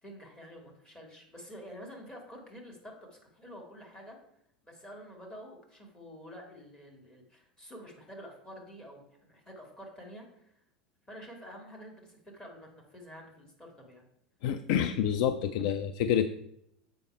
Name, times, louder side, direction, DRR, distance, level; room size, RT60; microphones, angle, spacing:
voice 1, 0.0-4.2 4.6-10.5 11.1-14.0, equal, 15° left, -1 dB, 2.1 m, -48 dB
voice 2, 14.4-16.3, left 9 dB, 50° left, 9 dB, 0.4 m, -28 dB
6.9 x 5.2 x 4.5 m, 0.75 s
figure-of-eight pair, 80°, 4 cm